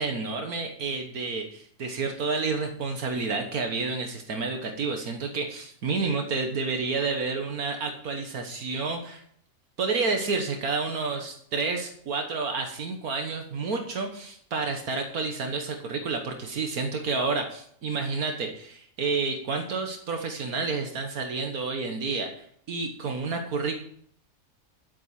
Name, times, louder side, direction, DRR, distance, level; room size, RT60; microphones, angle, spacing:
voice 1, 0.0-9.2 9.8-23.8, right 4 dB, 80° right, 4 dB, 1.8 m, -30 dB
13.0 x 8.0 x 5.8 m, 0.65 s
omnidirectional pair, 1.5 m